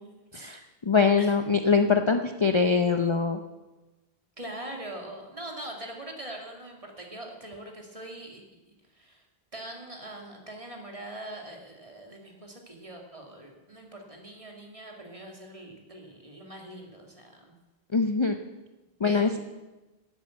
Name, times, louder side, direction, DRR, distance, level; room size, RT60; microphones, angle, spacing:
voice 1, 0.3-3.4 17.9-18.4 19.0-19.4, left 5 dB, 30° left, 6 dB, 0.6 m, -23 dB
voice 2, 4.4-9.3 9.5-17.6 19.0-19.4, right 1 dB, 30° right, 1 dB, 2.2 m, -42 dB
11.0 x 8.6 x 8.2 m, 1.1 s
omnidirectional pair, 1.1 m